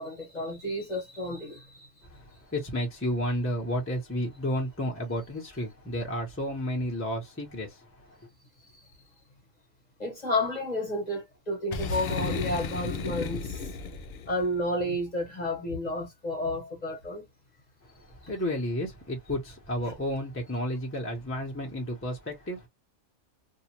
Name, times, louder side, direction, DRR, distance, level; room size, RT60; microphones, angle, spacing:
voice 1, 0.0-1.9 10.0-13.6 14.3-17.2, left 1 dB, 35° left, 1.2 m, -31 dB
voice 2, 2.0-8.2 18.1-22.7, equal, 10° left, 0.9 m, -32 dB
Boom, 11.7-14.4, left 5 dB, 60° left, 0.6 m, -33 dB
2.7 x 2.4 x 2.9 m
omnidirectional pair, 1.3 m